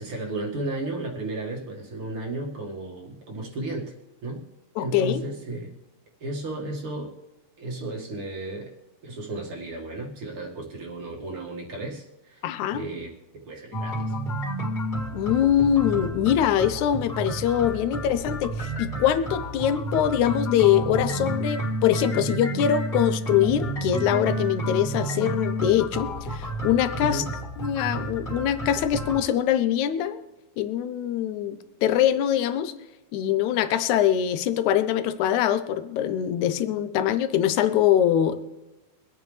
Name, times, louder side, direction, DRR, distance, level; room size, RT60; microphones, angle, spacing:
voice 1, 0.0-3.9 4.2-4.5 4.8-5.7 6.2-7.1 7.6-8.7 9.0-12.4 12.7-13.1 13.5-14.1 27.0-27.3, right 2 dB, 45° right, 0 dB, 2.4 m, -34 dB
voice 2, 4.8-5.2 12.4-12.9 15.1-27.2 27.6-30.2 30.6-32.7 33.1-38.4, left 10 dB, 70° left, 10 dB, 2.1 m, -23 dB
sound 1, 13.7-29.2, right 1 dB, 30° left, 2.8 m, -31 dB
24.0 x 9.0 x 3.3 m, 1.0 s
omnidirectional pair, 3.8 m